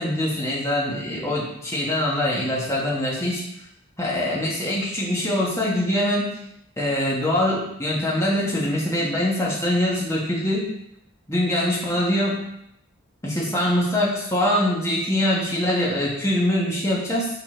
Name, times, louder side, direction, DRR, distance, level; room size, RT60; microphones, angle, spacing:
voice 1, 0.0-3.4 4.0-6.3 6.8-10.7 11.3-12.4 13.2-17.3, left 1 dB, 15° left, -5 dB, 1.6 m, -23 dB
6.5 x 4.3 x 4.5 m, 0.77 s
head